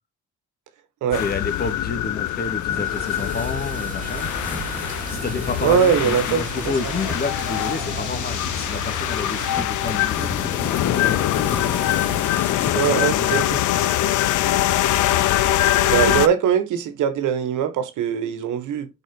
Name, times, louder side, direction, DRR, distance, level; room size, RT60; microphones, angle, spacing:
sound 1, 1.1-16.3, left 13 dB, 75° left, 0.6 m, -23 dB
voice 1, 1.2-4.3 5.1-11.2 12.4-13.5, left 4 dB, 30° left, 1.6 m, -30 dB
sound 2, 2.6-9.6, right 4 dB, 25° right, 2.6 m, -35 dB
sound 3, 2.7-13.3, left 1 dB, 5° left, 1.4 m, -36 dB
voice 2, 5.6-6.7 12.7-13.6 15.8-18.9, right 8 dB, 80° right, 1.1 m, -21 dB
4.5 x 4.2 x 5.3 m
cardioid pair, 90°, 30 cm